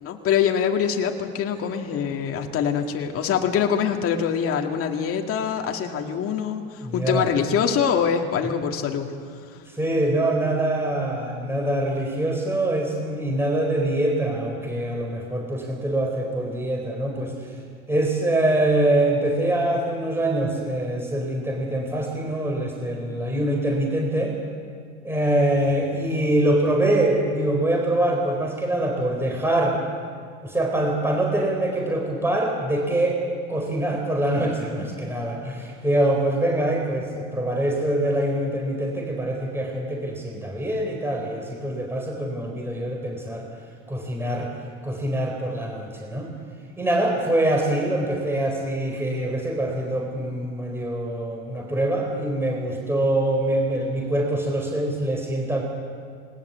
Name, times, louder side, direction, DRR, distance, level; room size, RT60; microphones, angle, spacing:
voice 1, 0.0-9.1 9.4-9.6, left 7 dB, 45° left, 3 dB, 2.2 m, -24 dB
voice 2, 6.8-7.3 9.8-17.3 17.9-24.4 25.0-29.8 30.4-33.2 33.5-43.5 43.9-44.5 44.8-46.3 46.8-55.6, right 1 dB, 10° right, 1 dB, 4.2 m, -24 dB
20.0 x 19.5 x 8.2 m, 2.2 s
supercardioid pair, 105°, 31 cm